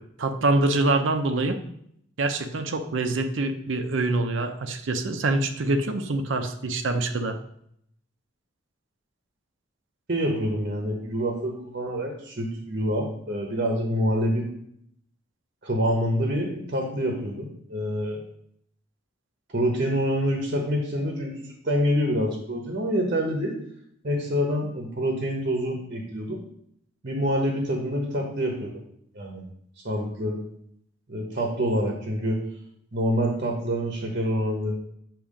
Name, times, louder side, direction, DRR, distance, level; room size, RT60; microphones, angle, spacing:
voice 1, 0.0-1.6 2.2-7.4, right 2 dB, 80° right, 6 dB, 0.6 m, -25 dB
voice 2, 10.1-14.5 15.6-18.2 19.5-23.6 24.0-26.4 27.0-28.8 29.1-29.4 29.8-30.4 31.1-32.4 32.9-34.8, equal, 50° right, 0 dB, 1.1 m, -26 dB
7.2 x 3.0 x 4.9 m, 0.70 s
head